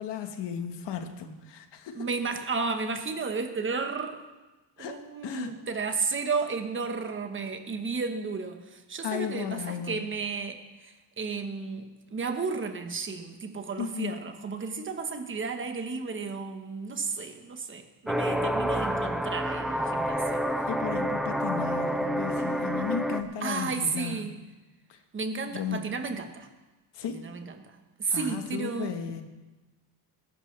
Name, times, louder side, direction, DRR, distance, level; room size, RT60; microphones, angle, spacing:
voice 1, 0.0-2.1 4.8-5.5 9.0-10.1 13.8-14.1 20.6-24.2 25.5-25.8 26.9-27.2 28.1-29.2, left 8 dB, 75° left, 6 dB, 1.5 m, -35 dB
voice 2, 1.9-4.2 4.8-20.5 23.4-24.3 25.1-26.5 27.0-29.0, right 4 dB, 30° right, 6 dB, 1.2 m, -33 dB
sound 1, 18.1-23.2, equal, ahead, 0.5 m, -28 dB
20.0 x 11.0 x 3.3 m, 1.1 s
cardioid pair, 135°, 43 cm